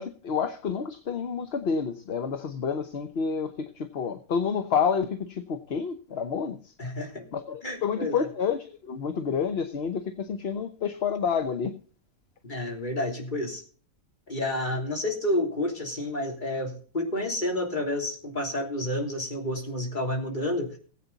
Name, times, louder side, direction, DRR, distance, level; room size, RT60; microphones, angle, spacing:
voice 1, 0.0-6.7 7.3-11.8, left 6 dB, 50° left, 1.1 m, -29 dB
voice 2, 6.8-7.2 7.6-8.3 12.4-13.6 14.3-20.8, left 1 dB, 35° left, 3.4 m, -30 dB
19.0 x 8.5 x 4.0 m
omnidirectional pair, 1.4 m